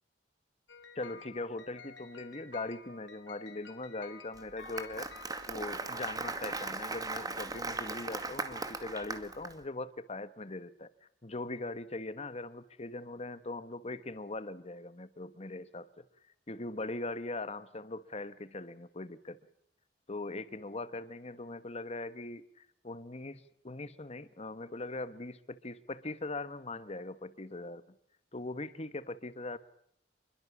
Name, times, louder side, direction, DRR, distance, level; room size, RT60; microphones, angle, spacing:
sound 1, 0.7-6.7, left 5 dB, 90° left, 3.3 m, -52 dB
voice 1, 0.9-5.1 5.5-16.0 16.5-19.4 20.1-27.8 28.3-29.6, left 2 dB, 35° left, 1.3 m, -41 dB
Applause, 4.4-9.5, right 3 dB, 20° right, 2.3 m, -38 dB
27.5 x 22.5 x 7.2 m
head